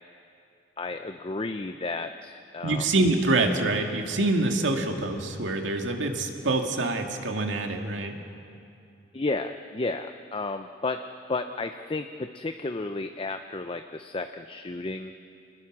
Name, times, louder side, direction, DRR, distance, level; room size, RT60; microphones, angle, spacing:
voice 1, 0.8-2.9 9.1-11.0 11.3-15.1, left 3 dB, 30° left, 7 dB, 0.6 m, -32 dB
voice 2, 2.6-8.2, right 2 dB, 85° right, 3 dB, 2.1 m, -26 dB
27.5 x 20.5 x 6.2 m, 2.5 s
head